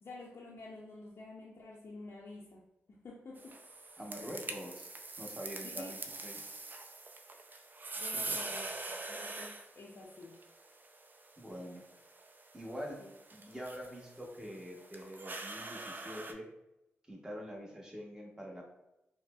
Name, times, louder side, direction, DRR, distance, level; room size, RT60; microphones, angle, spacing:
voice 1, 0.0-2.6 2.9-3.6 5.6-5.9 8.0-8.7 9.1-10.3, left 2 dB, 60° left, -3 dB, 0.5 m, -49 dB
sound 1, 3.4-16.3, right 2 dB, 40° right, 0.4 m, -44 dB
voice 2, 4.0-6.4 8.1-8.4 11.4-11.8 12.5-13.0 13.3-16.5 17.1-18.7, equal, 15° right, -1 dB, 1.0 m, -45 dB
4.8 x 2.0 x 2.3 m, 0.88 s
cardioid pair, 55°, 5 cm